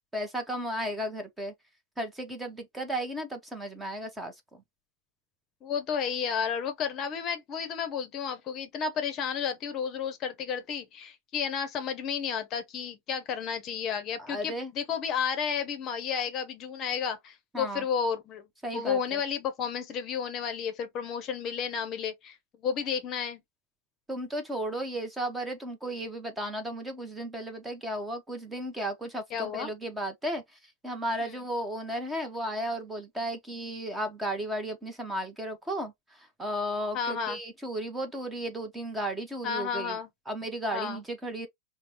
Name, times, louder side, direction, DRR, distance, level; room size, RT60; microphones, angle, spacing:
voice 1, 0.1-1.5 2.0-4.6 14.2-14.7 17.5-17.8 18.6-19.2 24.1-30.4 30.8-40.0 40.3-41.5, right 1 dB, 10° right, 0.7 m, -34 dB
voice 2, 5.6-18.5 18.7-23.4 29.3-29.7 31.2-31.3 36.9-37.4 39.4-40.1 40.7-41.0, left 7 dB, 30° left, 0.7 m, -32 dB
5.0 x 2.0 x 2.9 m
supercardioid pair, 145°, 0 cm